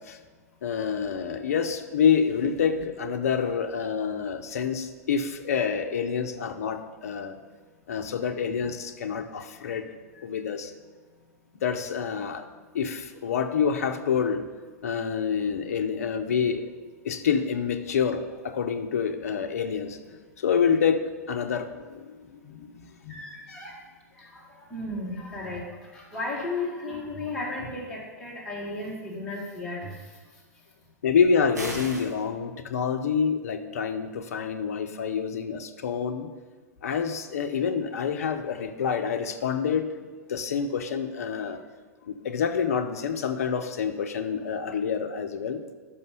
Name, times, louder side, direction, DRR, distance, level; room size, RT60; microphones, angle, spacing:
voice 1, 0.6-7.4 7.9-9.9 10.2-10.7 11.5-12.4 12.7-14.4 14.8-16.7 17.0-20.0 20.4-23.2 31.0-36.3 36.8-39.8 40.3-41.6 42.0-45.6, left 6 dB, 60° left, 7 dB, 0.6 m, -27 dB
voice 2, 23.1-23.8 24.1-30.1, left 2 dB, 5° left, -7 dB, 1.8 m, -35 dB
sound 1, 31.5-32.1, right 1 dB, 85° right, 1.8 m, -35 dB
5.6 x 5.4 x 6.7 m, 1.5 s
figure-of-eight pair, 100°, 9 cm